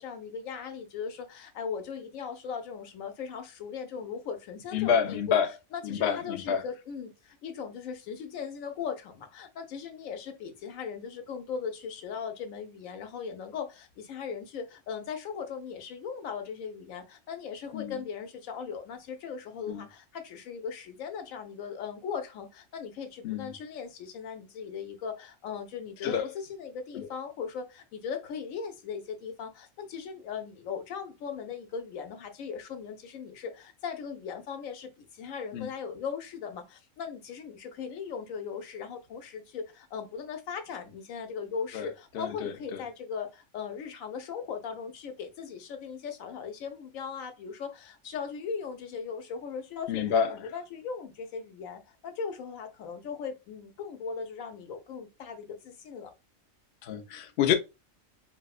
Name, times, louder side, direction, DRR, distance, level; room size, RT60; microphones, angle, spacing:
voice 1, 0.0-5.4 5.7-56.1, left 6 dB, 85° left, 1.1 m, -38 dB
voice 2, 4.7-5.5 5.8-6.6 17.7-17.9 19.7-19.8 23.2-23.5 26.0-26.3 26.9-27.1 35.5-35.7 41.7-41.9 42.1-42.8 49.9-50.3 56.8-57.6, left 8 dB, 60° left, 0.7 m, -28 dB
4.2 x 2.1 x 2.3 m
omnidirectional pair, 1.4 m